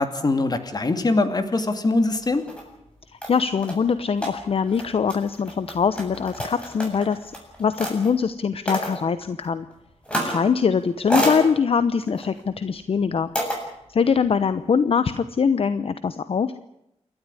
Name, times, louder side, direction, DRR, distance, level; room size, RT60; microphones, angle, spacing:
voice 1, 0.0-2.4, left 2 dB, 35° left, 9 dB, 2.6 m, -22 dB
sound 1, 2.2-2.6 3.2-8.1 8.7-9.0 10.0-10.5 10.8-11.4 12.1-12.4 13.3-13.6, equal, 10° left, 7.7 m, -29 dB
voice 2, 3.1-7.3 7.6-9.7 10.2-13.3 13.9-16.5, left 6 dB, 55° left, 13 dB, 0.9 m, -23 dB
28.5 x 13.0 x 9.9 m, 0.83 s
wide cardioid pair, 120°, 12 cm